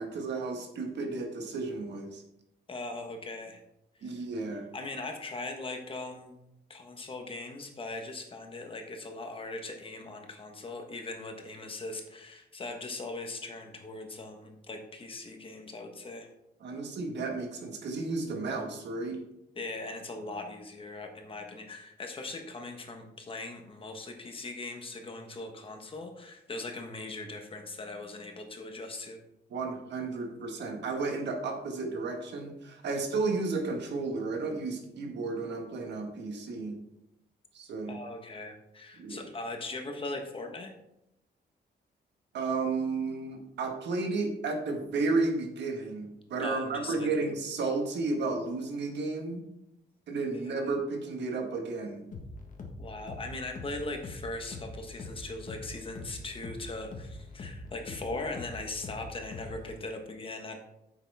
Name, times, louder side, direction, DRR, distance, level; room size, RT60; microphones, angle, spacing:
voice 1, 0.0-2.2 4.0-4.7 16.6-19.2 29.5-36.8 37.5-38.0 39.0-39.2 42.3-49.4 50.1-52.0, right 3 dB, 85° right, 3 dB, 1.7 m, -33 dB
voice 2, 2.7-3.6 4.0-4.2 4.7-6.4 6.7-16.3 19.5-29.2 37.9-40.7 46.4-47.1 50.3-50.5 52.8-60.6, left 2 dB, 30° left, 4 dB, 1.3 m, -40 dB
sound 1, 52.1-59.8, left 2 dB, 45° left, 1.4 m, -43 dB
9.7 x 7.2 x 3.5 m, 0.85 s
wide cardioid pair, 150°, 18 cm